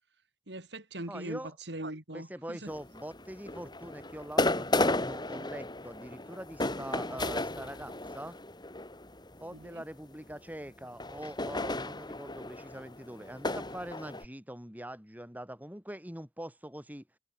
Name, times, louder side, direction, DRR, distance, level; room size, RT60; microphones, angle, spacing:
voice 1, 0.5-1.4 1.7-2.7 9.5-9.8, right 1 dB, 80° right, 4.2 m, -41 dB
voice 2, 1.1-1.5 2.1-8.4 9.4-17.0, right 1 dB, 10° right, 6.9 m, -43 dB
sound 1, 2.7-9.8 10.7-14.3, left 2 dB, 25° left, 5.2 m, -34 dB
head